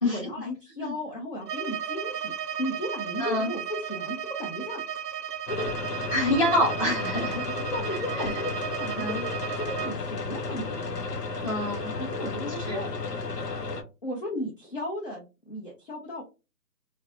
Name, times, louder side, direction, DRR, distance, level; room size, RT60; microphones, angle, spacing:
voice 1, 0.0-4.8 5.5-5.7 7.2-7.3 7.7-11.0 12.0-12.9 14.0-16.2, left 1 dB, 35° left, -2 dB, 0.7 m, -35 dB
Bowed string instrument, 1.4-10.0, right 9 dB, 80° right, 0.6 m, -35 dB
voice 2, 3.2-3.5 6.1-7.4 9.0-9.2 11.4-11.9 12.7-12.8, left 1 dB, 20° left, -5 dB, 1.1 m, -26 dB
sound 1, 5.5-13.8, left 3 dB, 75° left, 0.9 m, -33 dB
4.1 x 2.1 x 2.5 m, 0.28 s
figure-of-eight pair, 165°, 48 cm